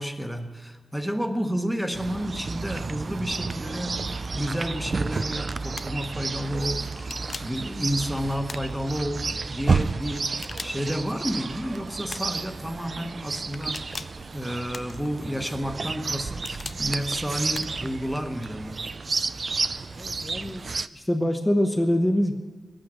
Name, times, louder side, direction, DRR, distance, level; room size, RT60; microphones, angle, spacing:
voice 1, 0.0-4.0 4.3-6.9 7.4-14.1 14.3-18.8, equal, 5° right, 6 dB, 1.1 m, -31 dB
Chirp tweet, 1.9-20.9, right 4 dB, 50° right, 0.4 m, -31 dB
sound 1, 5.7-6.1 7.0-7.6 8.5-9.1 10.2-11.0 12.1-12.5 13.5-14.2 14.7-15.3 16.1-16.8 17.5-17.9, left 3 dB, 45° left, 0.5 m, -40 dB
voice 2, 19.9-20.6 20.9-22.3, equal, 15° left, 2 dB, 0.9 m, -24 dB
20.5 x 8.9 x 6.3 m, 1.5 s
cardioid pair, 70°, 0 cm